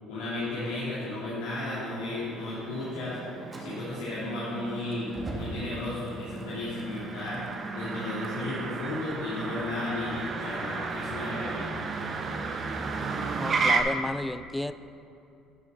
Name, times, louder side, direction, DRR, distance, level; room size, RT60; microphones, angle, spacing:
voice 1, 0.1-3.2 3.6-7.4 7.7-11.7, left 2 dB, 90° left, -10 dB, 1.8 m, -34 dB
Motor vehicle (road), 0.7-13.8, right 4 dB, 45° right, 0.7 m, -34 dB
Fire, 3.5-12.5, right 1 dB, 25° right, 1.3 m, -46 dB
voice 2, 13.4-14.7, left 1 dB, 5° left, 13 dB, 0.3 m, -32 dB
10.5 x 5.1 x 3.8 m, 2.6 s
supercardioid pair, 80°, 0 cm